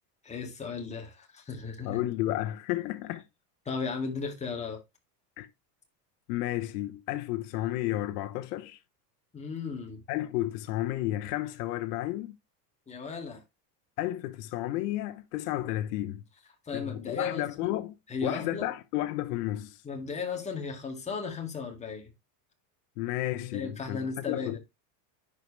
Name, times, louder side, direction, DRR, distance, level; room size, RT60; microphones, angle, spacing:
voice 1, 0.2-2.0 3.7-4.8 9.3-10.0 12.9-13.4 16.7-17.7 18.1-18.7 19.8-22.1 23.5-24.6, left 5 dB, 15° left, 2.0 m, -35 dB
voice 2, 1.8-3.2 5.4-5.5 6.3-8.8 10.1-12.3 14.0-16.2 16.7-17.9 18.2-19.8 23.0-24.6, left 15 dB, 75° left, 1.0 m, -32 dB
10.5 x 4.8 x 3.2 m
supercardioid pair, 145°, 48 cm